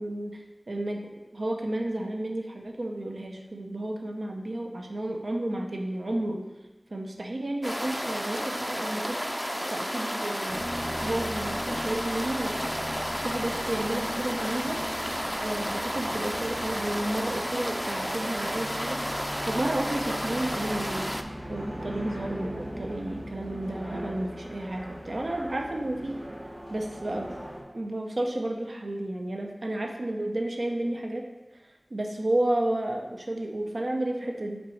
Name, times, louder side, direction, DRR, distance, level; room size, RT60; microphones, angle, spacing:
voice 1, 0.0-6.4 6.9-9.2 9.7-10.7 11.0-12.6 13.2-14.8 15.4-19.0 19.4-21.2 21.5-26.1 26.7-27.4 27.7-31.2 31.9-34.6, right 1 dB, 85° right, 2 dB, 0.7 m, -32 dB
sound 1, 7.6-21.2, equal, ahead, 0.4 m, -32 dB
sound 2, 10.5-27.6, equal, 70° right, 2.2 m, -39 dB
6.1 x 4.0 x 4.9 m, 1.1 s
wide cardioid pair, 45°, 0 cm